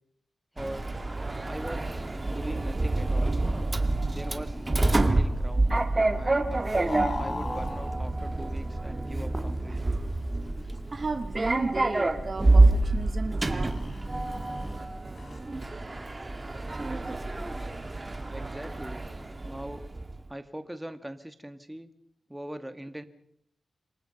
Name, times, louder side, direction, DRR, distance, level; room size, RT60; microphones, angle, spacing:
voice 1, 0.5-0.9 1.5-3.3 4.1-5.7 6.1-10.0 18.3-19.0 19.4-19.9 20.3-21.9 22.3-23.0, right 1 dB, 10° right, 9 dB, 2.0 m, -41 dB
Sliding door, 0.6-20.2, right 2 dB, 25° right, 2.1 m, -27 dB
sound 1, 2.0-15.4, left 3 dB, 50° left, 5.4 m, -43 dB
voice 2, 10.9-13.8, right 3 dB, 45° right, 9 dB, 1.4 m, -34 dB
27.5 x 23.0 x 5.5 m, 0.74 s
cardioid pair, 80°, 0 cm